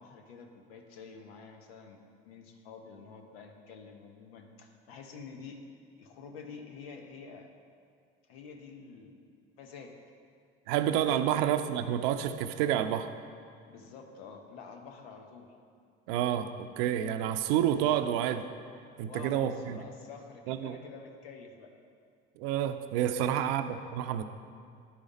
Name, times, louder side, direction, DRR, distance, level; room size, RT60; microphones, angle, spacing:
voice 1, 0.0-5.6 6.0-7.5 8.3-9.2 9.6-10.0 11.0-11.3 13.7-15.5 19.0-21.7 23.2-23.5, left 5 dB, 80° left, 4 dB, 0.9 m, -48 dB
voice 2, 10.7-13.1 16.1-18.5 19.0-19.8 20.5-20.8 22.4-24.2, right 10 dB, 75° right, 10 dB, 0.5 m, -29 dB
10.5 x 5.0 x 4.1 m, 2.3 s
hypercardioid pair, 65°, 29 cm